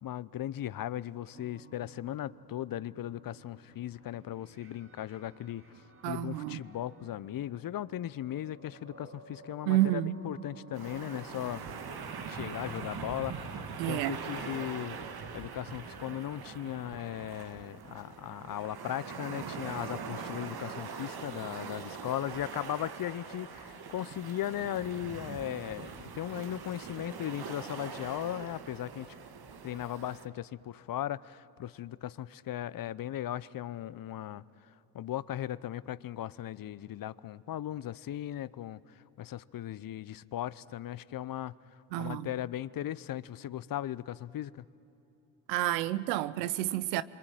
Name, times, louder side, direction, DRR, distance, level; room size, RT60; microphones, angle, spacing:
voice 1, 0.0-5.7 6.1-11.6 12.3-15.0 15.3-29.1 29.6-41.5 42.0-44.6, left 12 dB, 45° left, 0.8 m, -37 dB
sound 1, 1.3-20.3, right 2 dB, 25° right, 2.2 m, -56 dB
voice 2, 6.0-6.6 9.7-10.1 13.8-14.2 41.9-42.3 45.5-47.0, right 15 dB, 85° right, 0.9 m, -29 dB
sound 2, 10.7-30.3, right 5 dB, 50° right, 2.0 m, -42 dB
27.0 x 24.0 x 9.1 m
hypercardioid pair, 60°, 49 cm